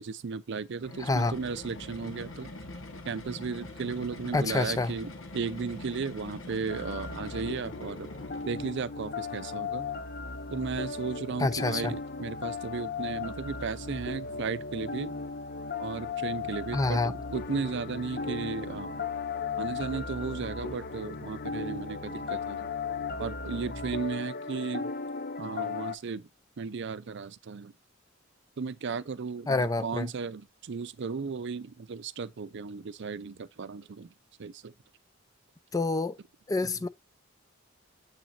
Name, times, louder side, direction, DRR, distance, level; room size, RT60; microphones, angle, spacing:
voice 1, 0.0-2.5 3.0-8.1 8.4-9.9 10.5-15.1 15.8-19.0 19.6-22.7 23.2-24.9 25.4-26.3 26.6-27.7 28.6-34.1 34.4-34.7, right 5 dB, 60° right, 0.5 m, -35 dB
sound 1, 0.8-8.8, left 2 dB, 70° left, 1.3 m, -44 dB
voice 2, 1.0-1.4 4.3-4.9 11.4-11.9 16.7-17.1 29.5-30.1 35.7-36.2 36.5-36.9, left 3 dB, 15° left, 0.4 m, -27 dB
sound 2, 6.7-26.0, left 5 dB, 50° left, 0.7 m, -36 dB
7.3 x 6.0 x 2.5 m
head